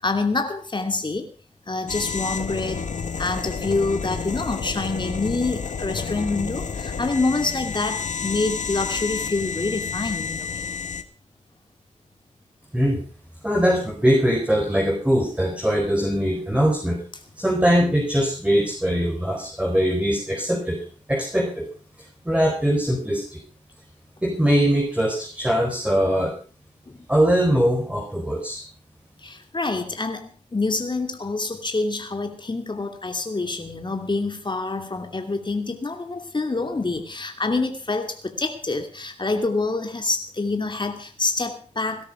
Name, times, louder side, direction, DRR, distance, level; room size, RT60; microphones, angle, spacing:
voice 1, 0.0-1.3 1.7-2.9 3.2-10.7 26.9-27.0 29.2-42.1, left 3 dB, 40° left, 5 dB, 2.6 m, -26 dB
sound 1, 1.9-11.0, left 5 dB, 80° left, 1.4 m, -30 dB
voice 2, 13.4-17.0 17.4-21.7 22.2-23.4 24.2-26.4 27.1-28.6, equal, 10° right, 1 dB, 4.8 m, -21 dB
18.0 x 12.5 x 5.1 m, 0.38 s
cardioid pair, 55°, 13 cm